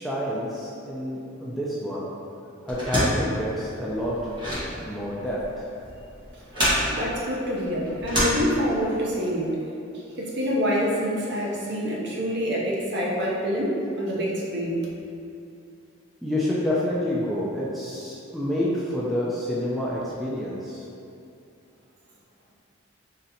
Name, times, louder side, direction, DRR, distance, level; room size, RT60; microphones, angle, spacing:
voice 1, 0.0-2.1 2.6-4.3 4.8-5.6 16.2-20.8, left 1 dB, ahead, -7 dB, 0.3 m, -28 dB
sound 1, 2.7-9.0, equal, 20° right, 1.0 m, -28 dB
voice 2, 6.9-9.6 9.9-14.8, equal, 55° right, -4 dB, 0.6 m, -26 dB
3.9 x 3.2 x 2.7 m, 2.7 s
head